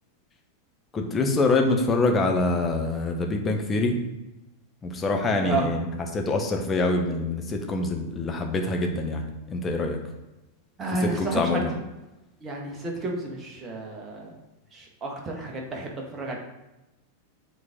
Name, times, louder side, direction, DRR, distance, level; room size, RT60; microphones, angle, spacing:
voice 1, 0.9-3.9 4.8-5.9 6.1-10.0 11.0-11.7, left 2 dB, 20° left, 3 dB, 1.1 m, -25 dB
voice 2, 10.8-11.8 12.4-14.3 14.7-16.4, right 3 dB, 20° right, 0 dB, 1.5 m, -31 dB
7.6 x 4.1 x 3.7 m, 1.0 s
figure-of-eight pair, 90°, 0 cm